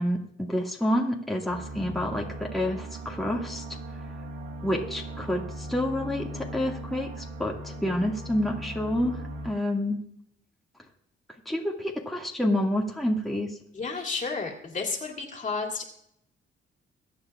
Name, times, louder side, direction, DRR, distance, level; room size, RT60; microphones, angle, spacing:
voice 1, 0.0-3.6 4.6-7.1 7.4-10.0 11.5-13.6, left 1 dB, ahead, -2 dB, 2.1 m, -28 dB
sound 1, 1.5-9.5, right 1 dB, 70° right, 1.9 m, -38 dB
voice 2, 13.7-15.8, left 4 dB, 40° left, 2 dB, 2.7 m, -32 dB
22.5 x 9.5 x 2.5 m, 0.73 s
cardioid pair, 90°, 20 cm